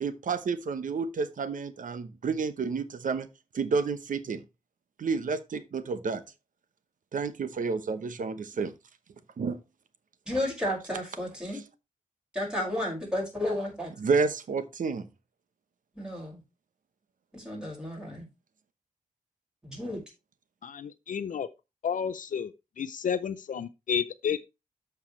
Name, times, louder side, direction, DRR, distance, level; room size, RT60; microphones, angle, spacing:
voice 1, 0.0-3.3 3.5-4.4 5.0-6.2 7.1-8.7 9.4-9.6 11.4-11.6 14.0-15.1, right 5 dB, 85° right, 0.9 m, -30 dB
voice 2, 10.3-11.6 12.3-13.9 16.0-16.4 17.3-18.2 19.6-20.0, left 1 dB, 5° right, 5.4 m, -32 dB
voice 3, 20.6-21.5 21.8-22.5 22.8-24.4, left 7 dB, 85° left, 0.5 m, -31 dB
13.0 x 4.7 x 3.2 m
wide cardioid pair, 120°, 13 cm